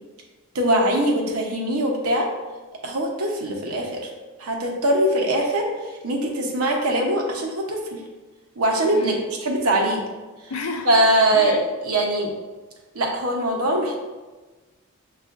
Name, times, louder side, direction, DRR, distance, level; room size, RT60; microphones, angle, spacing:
voice 1, 0.5-2.3 2.8-4.0 4.4-5.7 6.0-8.0 8.6-9.1 9.4-10.0 10.8-12.3 12.9-14.0, right 1 dB, 80° right, 0 dB, 0.8 m, -22 dB
voice 2, 10.5-10.9 11.3-11.6, left 2 dB, 75° left, 4 dB, 0.5 m, -30 dB
6.7 x 2.4 x 2.4 m, 1.3 s
head